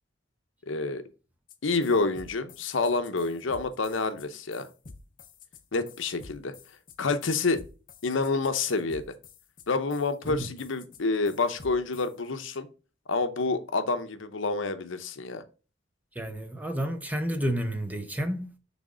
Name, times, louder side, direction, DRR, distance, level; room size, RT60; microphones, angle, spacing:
voice 1, 0.7-1.0 1.6-4.7 5.7-6.5 7.0-7.6 8.0-9.0 9.7-12.7 13.1-15.4, left 3 dB, 80° left, 0.7 m, -28 dB
sound 1, 1.5-1.6 1.8-12.1, left 4 dB, 45° left, 0.7 m, -49 dB
voice 2, 16.2-18.6, equal, 10° right, 0.7 m, -30 dB
6.2 x 3.5 x 4.9 m
head